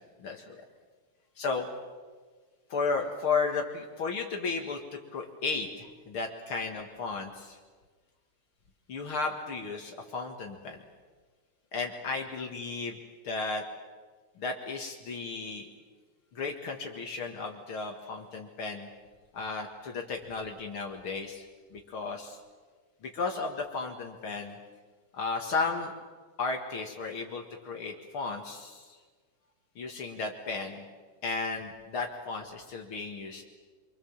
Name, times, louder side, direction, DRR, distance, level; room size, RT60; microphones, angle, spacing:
voice 1, 0.2-0.6 1.4-1.7 2.7-4.8 5.1-7.6 8.9-10.8 11.7-13.0 13.2-13.6 14.4-15.7 16.3-18.9 19.3-21.5 21.7-22.4 23.0-24.6 25.1-25.9 26.4-29.0 29.8-30.8 31.2-33.4, left 4 dB, 70° left, 2 dB, 2.8 m, -34 dB
27.0 x 25.0 x 7.3 m, 1.4 s
omnidirectional pair, 2.4 m